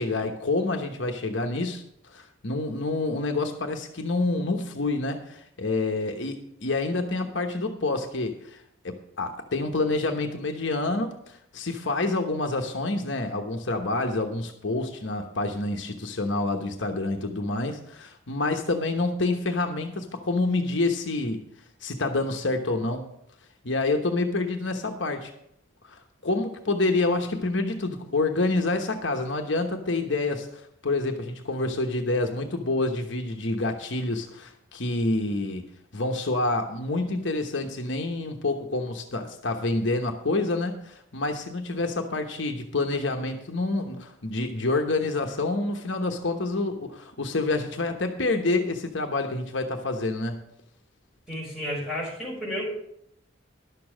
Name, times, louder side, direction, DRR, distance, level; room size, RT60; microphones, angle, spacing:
voice 1, 0.0-21.4 21.8-23.1 23.6-25.3 25.8-35.7 35.9-50.4, left 2 dB, 70° left, 4 dB, 1.1 m, -28 dB
voice 2, 51.3-52.7, equal, 5° right, -5 dB, 5.4 m, -32 dB
11.5 x 6.9 x 6.3 m, 0.74 s
head